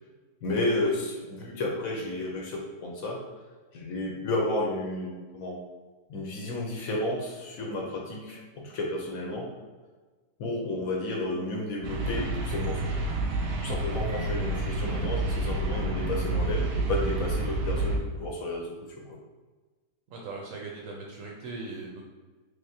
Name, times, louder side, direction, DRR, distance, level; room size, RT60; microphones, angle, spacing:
voice 1, 0.4-3.2 3.7-5.6 6.1-9.5 10.4-13.1 13.6-19.0, left 2 dB, 65° left, -1 dB, 1.0 m, -32 dB
sound 1, 11.8-18.0, right 2 dB, 90° right, 1.2 m, -29 dB
voice 2, 20.1-22.0, right 3 dB, 70° right, -1 dB, 0.8 m, -40 dB
3.4 x 3.4 x 2.7 m, 1.3 s
omnidirectional pair, 1.7 m